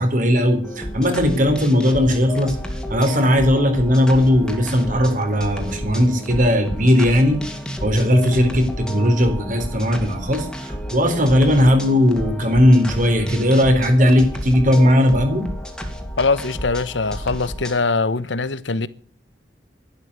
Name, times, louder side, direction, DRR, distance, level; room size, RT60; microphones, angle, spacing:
voice 1, 0.0-2.6 2.9-7.4 7.8-15.4, equal, 45° right, 4.1 m, -17 dB
sound 1, 0.6-17.8, equal, 5° left, 2.7 m, -31 dB
voice 2, 16.2-18.9, left 3 dB, 85° left, 1.1 m, -22 dB
13.0 x 12.0 x 8.4 m
head